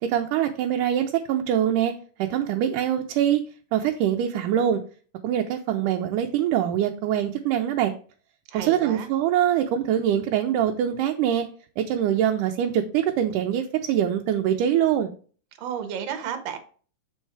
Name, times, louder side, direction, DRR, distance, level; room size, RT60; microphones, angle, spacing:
voice 1, 0.0-1.9 2.2-3.4 3.7-4.8 5.2-7.9 8.5-11.5 11.8-15.1, right 10 dB, 80° right, 3 dB, 2.1 m, -23 dB
voice 2, 8.5-9.1 15.6-16.6, right 8 dB, 60° right, 6 dB, 1.9 m, -32 dB
7.2 x 4.4 x 4.6 m, 0.41 s
omnidirectional pair, 3.8 m